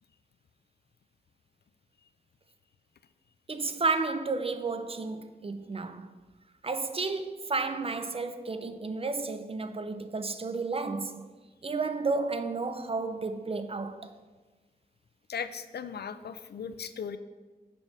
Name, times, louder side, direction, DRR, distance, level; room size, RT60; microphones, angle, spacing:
voice 1, 3.5-6.1 6.6-11.3 11.6-14.1, right 3 dB, 35° right, 0.4 m, -32 dB
voice 2, 15.3-17.2, left 7 dB, 80° left, 0.4 m, -37 dB
7.0 x 3.4 x 5.7 m
wide cardioid pair, 110°, 17 cm